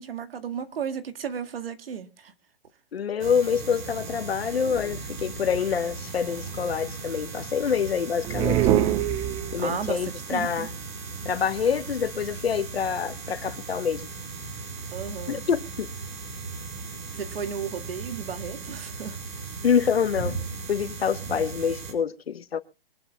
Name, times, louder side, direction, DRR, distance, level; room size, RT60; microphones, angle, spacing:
voice 1, 0.0-2.3 9.6-10.7 14.9-15.4 17.1-19.2, right 7 dB, 75° right, 2.0 m, -34 dB
voice 2, 2.9-8.6 9.5-10.7 11.2-14.0 15.3-15.9 19.6-20.4 20.7-22.6, left 7 dB, 90° left, 1.4 m, -26 dB
sound 1, 3.2-21.9, right 4 dB, 55° right, 5.1 m, -37 dB
sound 2, 8.2-9.8, right 11 dB, 15° right, 0.6 m, -23 dB
24.5 x 12.0 x 2.3 m
hypercardioid pair, 145°, 29 cm